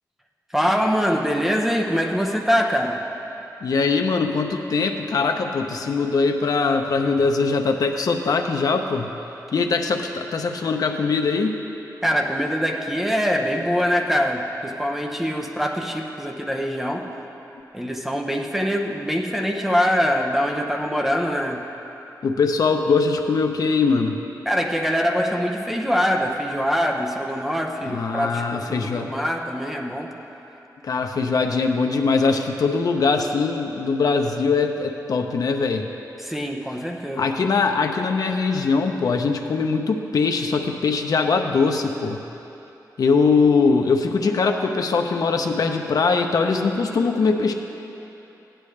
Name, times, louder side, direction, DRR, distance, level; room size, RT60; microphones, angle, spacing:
voice 1, 0.5-3.0 12.0-17.1 17.7-21.6 24.5-30.1 36.2-37.3, equal, 5° right, 1 dB, 0.7 m, -23 dB
voice 2, 3.6-9.1 9.5-11.6 22.2-24.2 27.8-29.1 30.8-35.9 37.2-42.2 43.0-47.5, left 4 dB, 65° left, 4 dB, 0.7 m, -21 dB
16.0 x 10.0 x 3.3 m, 3.0 s
wide cardioid pair, 170°, 7 cm